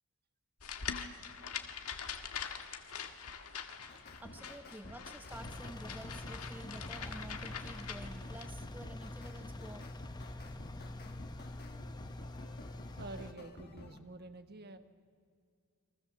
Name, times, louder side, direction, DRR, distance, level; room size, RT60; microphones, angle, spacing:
sound 1, 0.6-8.5, left 7 dB, 75° left, 1.7 m, -44 dB
sound 2, 3.9-14.0, left 1 dB, 45° left, 1.9 m, -52 dB
voice 1, 4.2-9.8, right 1 dB, 10° right, 7 dB, 0.8 m, -50 dB
Engine, 5.3-13.3, left 2 dB, 20° left, 0.9 m, -46 dB
voice 2, 13.0-14.8, right 2 dB, 45° right, 8 dB, 1.4 m, -48 dB
29.5 x 23.5 x 7.2 m, 2.2 s
head